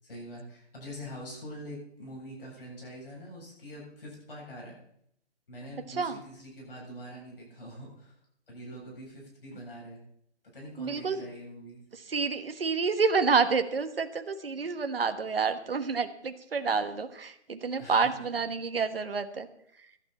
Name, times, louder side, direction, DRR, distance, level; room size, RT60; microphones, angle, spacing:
voice 1, 0.0-4.8 5.5-8.2 8.5-10.0 10.5-11.8 17.8-18.1, equal, 50° left, -3 dB, 7.7 m, -44 dB
voice 2, 5.9-6.2 10.8-11.3 11.9-19.5, right 5 dB, 55° right, 8 dB, 1.4 m, -29 dB
17.5 x 12.0 x 4.3 m, 0.67 s
hypercardioid pair, 175°, 35 cm